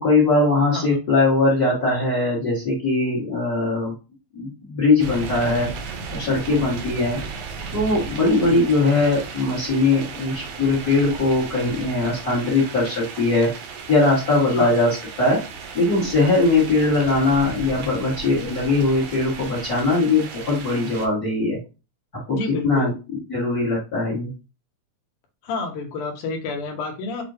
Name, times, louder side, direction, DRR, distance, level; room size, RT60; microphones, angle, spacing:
voice 1, 0.0-3.9 4.3-5.7 6.1-7.2 7.7-13.5 13.9-15.4 15.7-21.6 22.3-22.4 22.6-22.9 23.3-24.3, left 3 dB, 45° left, -4 dB, 1.2 m, -20 dB
sound 1, 5.0-21.1, right 5 dB, 75° right, 2.0 m, -35 dB
voice 2, 22.3-22.9 25.4-27.2, left 3 dB, 80° left, 3 dB, 2.4 m, -29 dB
6.2 x 2.2 x 2.6 m, 0.30 s
omnidirectional pair, 3.5 m